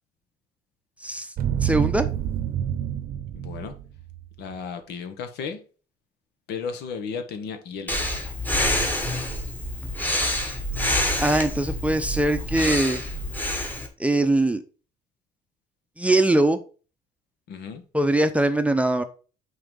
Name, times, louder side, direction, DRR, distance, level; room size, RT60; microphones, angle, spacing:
sound 1, 1.4-4.3 4.5-4.6, right 9 dB, 60° right, 0.7 m, -27 dB
voice 1, 1.6-2.1 11.2-13.0 14.0-14.6 16.0-16.6 17.9-19.0, right 1 dB, 10° right, 0.7 m, -21 dB
voice 2, 3.3-3.7 4.4-5.6 6.5-8.0 17.5-17.8, left 6 dB, 75° left, 1.3 m, -34 dB
Breathing, 7.9-13.9, left 1 dB, 10° left, 1.4 m, -27 dB
5.7 x 3.9 x 5.4 m
cardioid pair, 110°, 17 cm